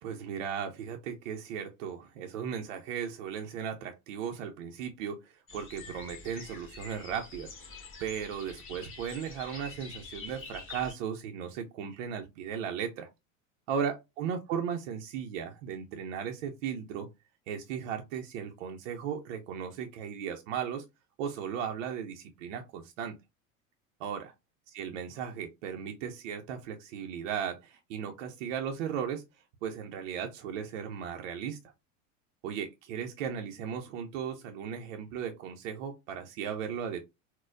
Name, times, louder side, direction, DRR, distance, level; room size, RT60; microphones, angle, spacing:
voice 1, 0.0-7.5 8.0-13.1 13.7-17.1 17.5-20.8 21.2-23.1 24.0-24.3 24.7-29.2 29.6-31.6 32.4-37.1, right 7 dB, 65° right, 3 dB, 0.7 m, -36 dB
sound 1, 5.5-10.9, left 4 dB, 30° left, 1.2 m, -46 dB
4.0 x 2.2 x 2.5 m, 0.22 s
hypercardioid pair, 85°, 40 cm